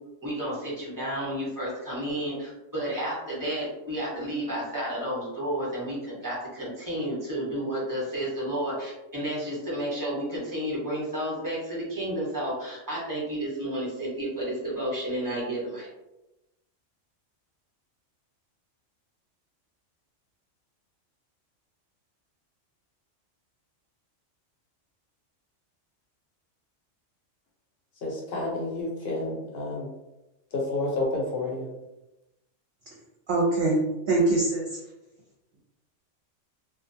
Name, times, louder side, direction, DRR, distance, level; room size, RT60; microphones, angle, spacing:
voice 1, 0.2-15.9, right 1 dB, 15° right, -7 dB, 0.9 m, -31 dB
voice 2, 28.0-29.9 30.5-31.8, left 2 dB, 60° left, -2 dB, 0.8 m, -30 dB
voice 3, 33.3-33.8 34.1-34.7, right 2 dB, 60° right, -4 dB, 0.8 m, -22 dB
2.3 x 2.2 x 2.6 m, 0.95 s
omnidirectional pair, 1.3 m